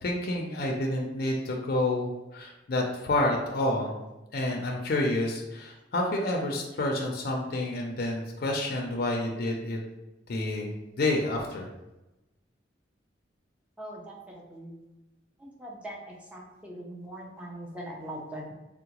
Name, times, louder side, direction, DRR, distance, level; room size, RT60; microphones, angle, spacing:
voice 1, 0.0-4.0 4.3-9.8 10.3-10.7 11.0-11.7, left 1 dB, 55° left, 0 dB, 0.4 m, -29 dB
voice 2, 13.8-14.2 14.5-14.7 15.6-18.5, right 1 dB, 5° right, -2 dB, 0.5 m, -41 dB
3.7 x 2.1 x 2.9 m, 1.0 s
head